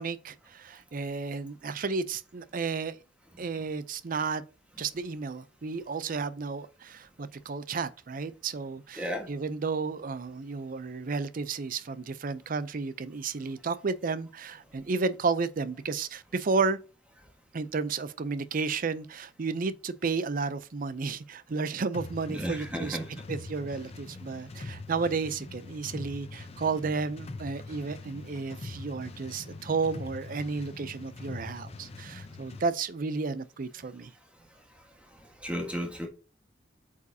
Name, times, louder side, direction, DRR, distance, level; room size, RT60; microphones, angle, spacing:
voice 1, 0.0-3.0 3.4-4.4 4.8-16.8 17.5-23.0 23.3-34.1, right 4 dB, 45° right, 0.5 m, -32 dB
voice 2, 9.0-9.3 22.3-23.2 35.4-36.1, equal, 5° right, 1.4 m, -33 dB
sound 1, 21.9-32.7, left 3 dB, 35° left, 0.6 m, -43 dB
8.2 x 4.8 x 2.7 m
head